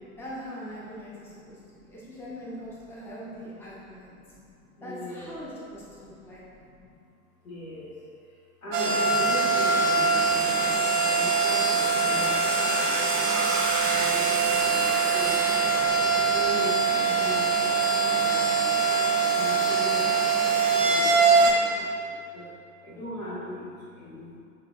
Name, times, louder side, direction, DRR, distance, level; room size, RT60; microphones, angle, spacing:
voice 1, 0.0-4.1 4.8-6.4, equal, 5° left, -8 dB, 0.7 m, -41 dB
voice 2, 1.1-1.9 3.6-3.7 4.1-5.6 5.9-6.2 6.5-7.0 7.4-8.0 8.6-10.6 11.1-13.5 13.9-15.4 15.9-17.5 18.1-18.7 19.3-20.2 20.8-22.4 22.8-24.4, equal, 75° left, -9 dB, 1.5 m, -40 dB
sound 1, 8.7-21.5, right 4 dB, 45° right, 0.7 m, -23 dB
4.8 x 2.8 x 2.3 m, 2.4 s
figure-of-eight pair, 80°, 42 cm